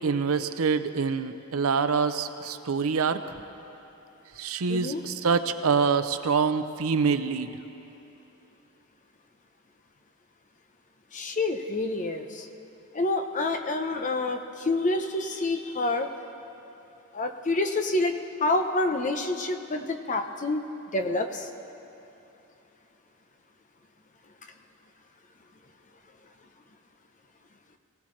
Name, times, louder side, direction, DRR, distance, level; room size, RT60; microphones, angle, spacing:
voice 1, 0.0-3.3 4.4-7.5, right 5 dB, 70° right, 10 dB, 0.6 m, -25 dB
voice 2, 4.7-5.0 11.1-12.5 12.9-16.1 17.1-20.6 20.9-21.5, left 2 dB, 35° left, 5 dB, 0.8 m, -28 dB
23.0 x 16.5 x 3.2 m, 3.0 s
head